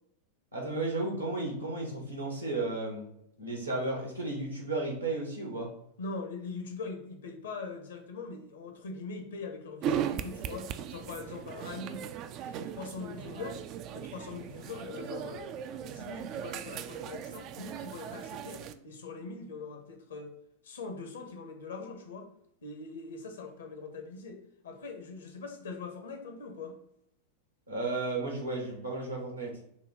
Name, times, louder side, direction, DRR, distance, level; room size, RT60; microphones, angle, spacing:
voice 1, 0.5-3.1 3.4-5.7 27.7-29.6, right 2 dB, 85° right, 0 dB, 1.5 m, -33 dB
voice 2, 6.0-12.1 12.4-13.6 13.9-15.5 15.9-20.3 20.6-22.3 22.6-26.7, left 4 dB, 65° left, 4 dB, 0.9 m, -42 dB
sound 1, 9.8-18.7, right 9 dB, 40° right, 0.3 m, -38 dB
6.0 x 2.3 x 3.8 m, 0.74 s
figure-of-eight pair, 90°, 0 cm